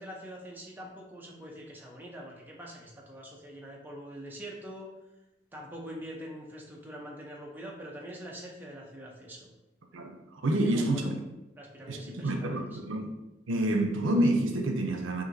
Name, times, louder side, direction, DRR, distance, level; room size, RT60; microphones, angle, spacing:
voice 1, 0.0-4.9 5.5-9.5 10.6-11.1 11.6-12.8, equal, 10° right, 0.7 m, -44 dB
voice 2, 9.9-11.1 11.9-13.1 13.5-15.2, right 1 dB, 85° right, 0.6 m, -28 dB
6.0 x 2.7 x 2.6 m
head